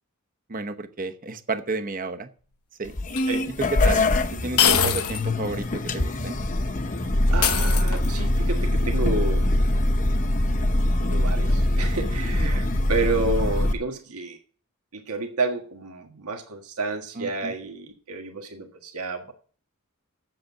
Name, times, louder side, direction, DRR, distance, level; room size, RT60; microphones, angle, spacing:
voice 1, 0.5-2.3 2.8-2.9 3.6-4.0 4.3-6.4 17.1-17.5, right 3 dB, 40° right, 8 dB, 0.9 m, -31 dB
sound 1, 2.8-13.7, left 1 dB, 35° left, 0.8 m, -23 dB
sound 2, 3.2-3.3 4.6-5.3 5.6-5.7 7.4-8.3, left 9 dB, 85° left, 1.0 m, -23 dB
voice 2, 7.3-9.5 11.0-14.4 14.9-19.3, right 3 dB, 85° right, 4 dB, 1.6 m, -30 dB
7.8 x 7.8 x 7.2 m, 0.42 s
head